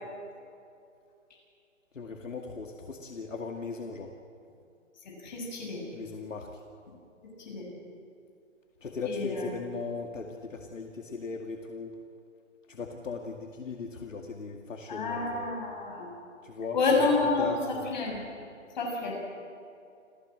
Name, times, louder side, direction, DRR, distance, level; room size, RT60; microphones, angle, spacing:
voice 1, 1.9-4.1 5.9-6.6 8.8-12.0 12.7-15.4 16.4-17.1 17.4-17.9, left 4 dB, 75° left, 3 dB, 2.3 m, -38 dB
voice 2, 5.0-5.8 7.2-7.6 9.0-9.5 14.9-16.1 16.7-17.6 17.9-18.3 18.7-19.1, left 3 dB, 35° left, -1 dB, 6.6 m, -29 dB
28.0 x 15.5 x 7.7 m, 2.6 s
hypercardioid pair, 170°, 39 cm